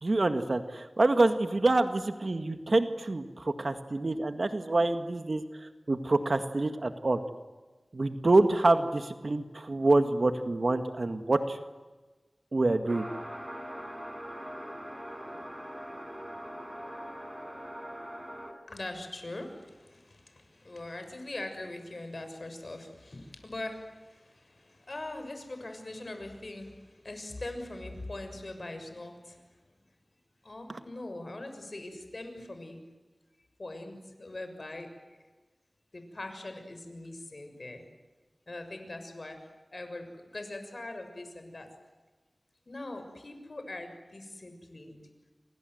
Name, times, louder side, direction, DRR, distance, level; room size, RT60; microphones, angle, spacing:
voice 1, 0.0-7.2 7.9-11.6 12.5-13.1, right 2 dB, 65° right, 8 dB, 1.9 m, -26 dB
sound 1, 12.9-18.5, equal, 15° right, 4.6 m, -41 dB
voice 2, 18.7-26.8 27.0-29.4 30.4-32.8 33.6-34.9 35.9-37.8 38.5-39.4 39.7-41.7 42.7-45.0, left 2 dB, 60° left, 7 dB, 6.7 m, -42 dB
28.5 x 26.0 x 8.0 m, 1.2 s
wide cardioid pair, 50°, 0 cm